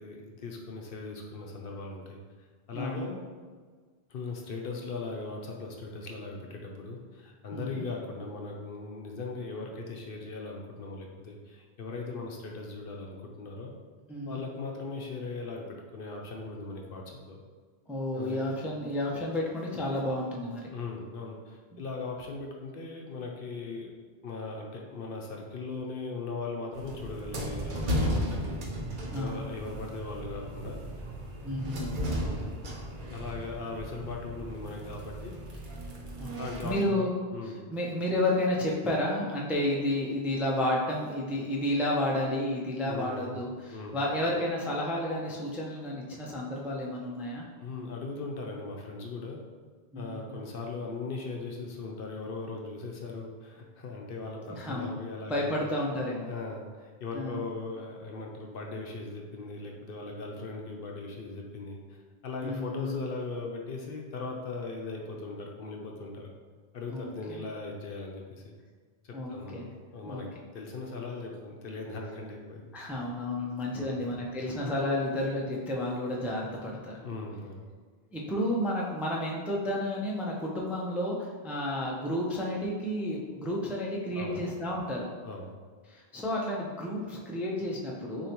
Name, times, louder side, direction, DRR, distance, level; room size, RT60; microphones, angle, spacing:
voice 1, 0.0-3.2 4.1-13.7 14.2-17.4 18.1-18.4 20.7-23.9 24.2-28.6 28.9-30.8 32.2-32.8 33.1-35.3 36.4-37.6 42.8-43.3 43.7-43.9 47.6-49.4 49.9-55.5 56.2-61.8 62.2-66.3 66.7-68.5 69.0-70.3 70.5-72.7 73.4-74.0 77.0-77.6 84.1-84.4 85.2-85.5, left 3 dB, 65° left, 0 dB, 0.8 m, -39 dB
voice 2, 2.7-3.1 7.5-7.9 14.1-14.4 17.9-20.7 21.7-21.8 29.1-29.5 31.4-31.9 36.2-36.4 36.6-37.1 37.7-47.5 49.9-50.4 54.5-54.9 55.3-56.3 57.1-57.4 62.4-63.1 66.9-67.4 69.1-69.7 70.0-70.2 72.7-77.0 78.1-85.1 85.9-88.3, left 1 dB, ahead, -3 dB, 0.4 m, -31 dB
sound 1, 26.7-36.8, equal, 55° right, 0.8 m, -35 dB
6.6 x 2.7 x 2.9 m, 1.6 s
omnidirectional pair, 1.1 m